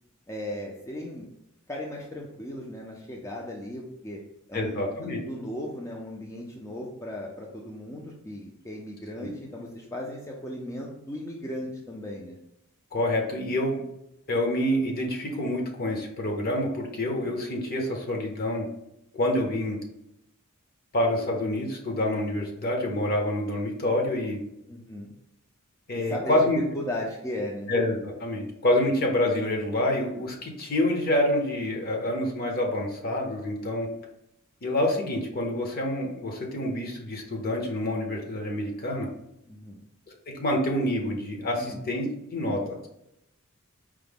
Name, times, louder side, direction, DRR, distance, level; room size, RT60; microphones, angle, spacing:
voice 1, 0.3-1.3 1.7-4.2 4.5-4.8 5.2-12.4 24.7-25.1 26.1-26.4 26.7-27.7 39.5-39.8 41.6-41.8, left 1 dB, 15° left, -2 dB, 0.4 m, -36 dB
voice 2, 4.5-5.2 9.2-9.3 12.9-13.8 14.3-18.7 19.1-19.8 20.9-24.4 25.9-26.6 27.7-33.9 34.6-39.1 40.3-42.8, left 1 dB, 45° left, 0 dB, 0.8 m, -27 dB
4.7 x 2.1 x 3.5 m, 0.82 s
head